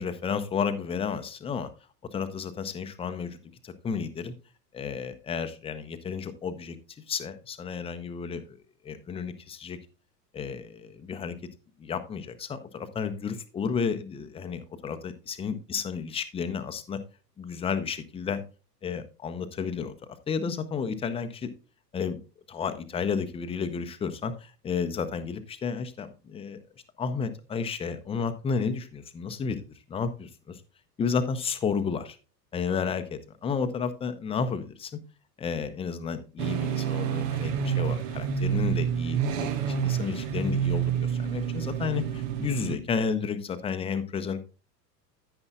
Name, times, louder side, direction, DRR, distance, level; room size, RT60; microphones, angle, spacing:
voice 1, 0.0-1.7 2.1-3.4 3.6-4.3 4.7-6.8 7.1-8.6 8.8-9.8 10.3-11.4 11.8-17.0 17.4-18.4 18.8-19.9 20.3-21.5 21.9-22.2 22.5-26.6 27.0-29.6 29.9-30.6 31.0-32.2 32.5-35.0 35.4-39.5 39.8-44.4, left 6 dB, 10° left, 10 dB, 0.7 m, -32 dB
sound 1, 36.4-42.8, right 8 dB, 15° right, 0.3 m, -28 dB
10.0 x 9.7 x 2.3 m, 0.33 s
figure-of-eight pair, 90°, 50 cm